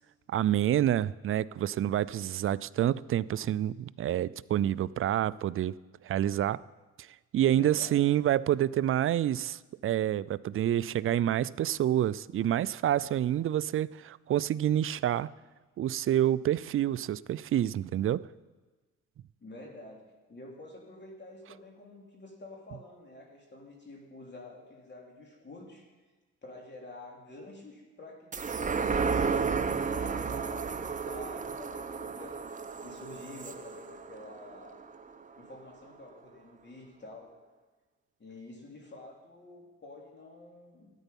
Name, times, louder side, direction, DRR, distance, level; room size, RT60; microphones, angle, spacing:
voice 1, 0.3-5.7 6.0-6.6 7.3-15.3 15.8-18.2, right 11 dB, 45° right, 18 dB, 0.4 m, -28 dB
voice 2, 7.5-8.0 19.4-25.9 26.4-32.4 32.8-34.8 35.4-37.3 38.2-40.9, left 2 dB, 35° left, 0 dB, 3.1 m, -48 dB
sound 1, 28.3-35.1 35.5-35.6, right 5 dB, 25° right, 0.8 m, -33 dB
13.0 x 9.2 x 5.4 m, 1.3 s
cardioid pair, 90°, 30 cm